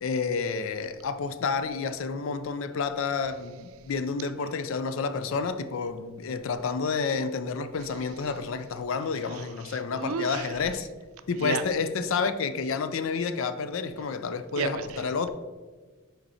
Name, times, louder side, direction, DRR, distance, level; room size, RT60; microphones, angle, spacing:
voice 1, 0.0-10.9 11.3-15.3, left 5 dB, 65° left, 11 dB, 0.4 m, -30 dB
voice 2, 10.0-10.4 11.4-11.6 14.6-14.8, right 5 dB, 80° right, 10 dB, 0.5 m, -30 dB
5.4 x 4.5 x 4.1 m, 1.4 s
head